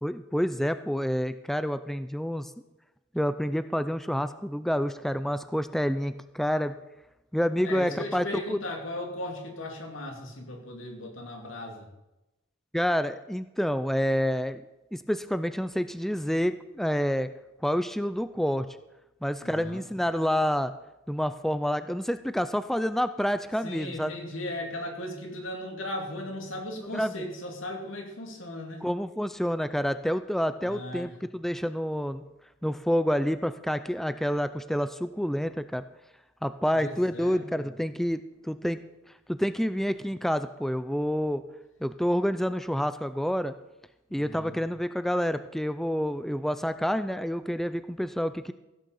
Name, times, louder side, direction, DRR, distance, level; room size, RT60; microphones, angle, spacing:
voice 1, 0.0-2.5 3.1-6.7 7.3-8.6 12.7-14.6 14.9-17.3 17.6-18.7 19.2-20.7 21.1-24.1 26.9-27.1 28.8-32.2 32.6-35.8 36.4-38.8 39.3-41.4 41.8-43.5 44.1-48.5, equal, ahead, 12 dB, 0.4 m, -28 dB
voice 2, 7.6-11.9 19.4-19.8 23.6-28.9 30.6-31.2 36.7-37.7 44.1-44.6, left 1 dB, 90° left, 2 dB, 2.7 m, -37 dB
15.5 x 6.4 x 7.0 m, 0.97 s
head